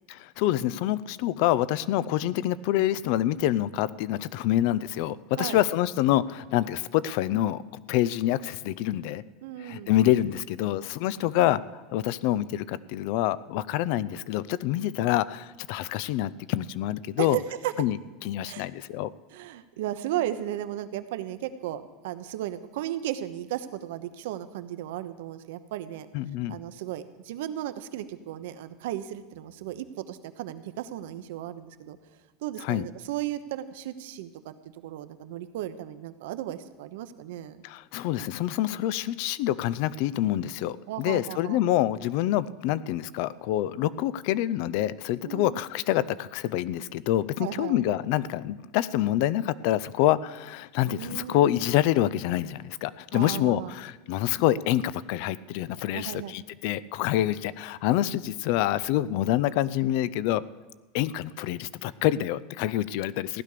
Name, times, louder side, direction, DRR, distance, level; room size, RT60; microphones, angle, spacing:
voice 1, 0.1-9.2 9.6-17.4 17.8-19.1 26.1-26.6 32.6-32.8 37.6-60.4 60.9-63.4, left 13 dB, 55° left, 19 dB, 0.5 m, -26 dB
voice 2, 9.4-9.9 17.2-17.7 18.4-18.7 19.3-26.1 26.5-32.0 32.4-37.6 40.9-41.6 45.2-45.6 47.4-47.8 50.9-51.6 53.1-53.7 55.9-56.3, right 13 dB, 75° right, 11 dB, 1.0 m, -35 dB
15.5 x 11.0 x 6.8 m, 1.2 s
supercardioid pair, 165°, 0 cm